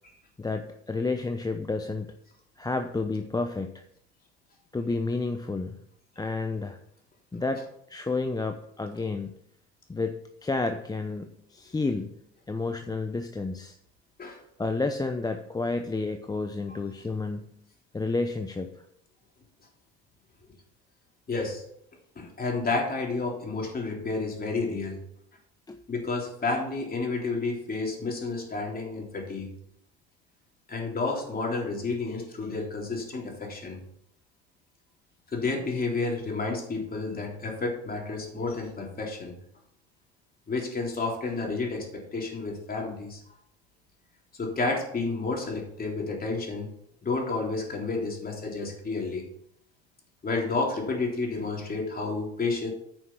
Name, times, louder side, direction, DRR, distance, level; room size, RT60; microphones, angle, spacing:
voice 1, 0.4-2.2 2.6-3.8 4.7-5.8 6.2-6.8 7.3-9.3 9.9-12.2 12.5-13.8 14.6-17.6 17.9-18.7 25.7-25.8, left 3 dB, 10° left, 6 dB, 0.7 m, -30 dB
voice 2, 21.3-21.6 22.2-25.0 25.9-29.5 30.7-33.8 35.3-39.3 40.5-43.2 44.4-46.7 47.0-49.2 50.2-52.7, left 3 dB, 25° left, 0 dB, 3.5 m, -30 dB
9.4 x 6.3 x 5.7 m, 0.74 s
hypercardioid pair, 70°, 33 cm